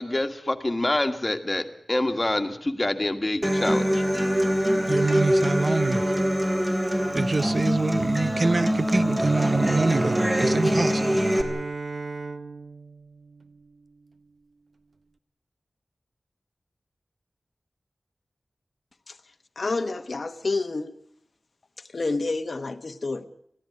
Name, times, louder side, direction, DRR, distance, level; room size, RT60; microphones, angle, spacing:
voice 1, 0.0-4.0, left 1 dB, 25° left, 1.8 m, -26 dB
Human voice / Acoustic guitar, 3.4-11.4, equal, 20° right, 3.0 m, -24 dB
voice 2, 4.9-6.1 7.1-11.0, right 3 dB, 40° right, 0.8 m, -25 dB
Bowed string instrument, 9.3-14.2, right 3 dB, 60° right, 1.2 m, -36 dB
voice 3, 19.6-20.9 21.9-23.3, left 3 dB, 55° left, 1.0 m, -28 dB
21.5 x 15.0 x 9.6 m
wide cardioid pair, 100°, 0 cm